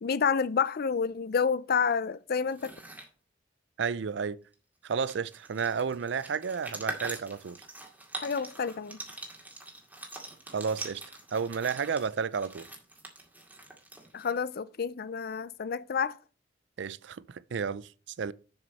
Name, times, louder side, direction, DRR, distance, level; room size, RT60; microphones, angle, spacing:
voice 1, 0.0-2.7 8.2-9.0 14.1-16.2, left 6 dB, 55° left, 0.5 m, -29 dB
sound 1, 2.4-3.1 4.5-4.6 4.8-14.4, right 2 dB, 10° right, 2.1 m, -43 dB
voice 2, 3.8-4.4 4.8-7.6 10.5-11.0 11.3-12.7 16.8-17.9 18.2-18.3, right 6 dB, 70° right, 0.5 m, -32 dB
7.3 x 6.2 x 5.3 m
head